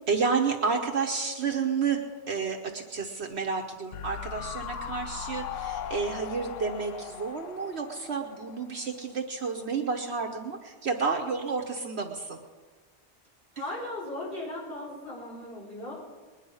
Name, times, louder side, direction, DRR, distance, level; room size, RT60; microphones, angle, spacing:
voice 1, 0.1-2.0 2.3-12.4, right 5 dB, 65° right, 3 dB, 1.2 m, -30 dB
sound 1, 3.9-9.2 9.4-9.5, left 9 dB, 90° left, 1.0 m, -39 dB
voice 2, 13.5-15.9, left 1 dB, 50° left, -7 dB, 6.3 m, -37 dB
21.0 x 10.5 x 5.5 m, 1.4 s
omnidirectional pair, 1.2 m